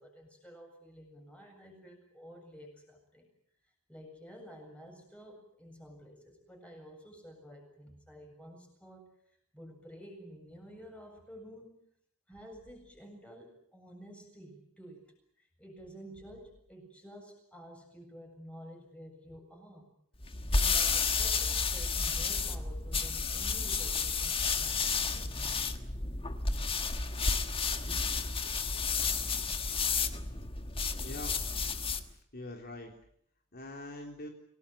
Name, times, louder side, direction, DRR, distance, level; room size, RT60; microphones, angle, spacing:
voice 1, 0.0-3.3 3.9-9.1 9.5-11.8 12.3-19.9 20.5-25.6, equal, 5° left, 3 dB, 7.7 m, -51 dB
sound 1, 20.2-32.1, left 4 dB, 25° left, 1.5 m, -31 dB
voice 2, 30.3-31.6 32.3-32.9 33.5-34.3, left 1 dB, 45° left, 2 dB, 3.8 m, -45 dB
28.5 x 19.0 x 8.8 m, 0.70 s
head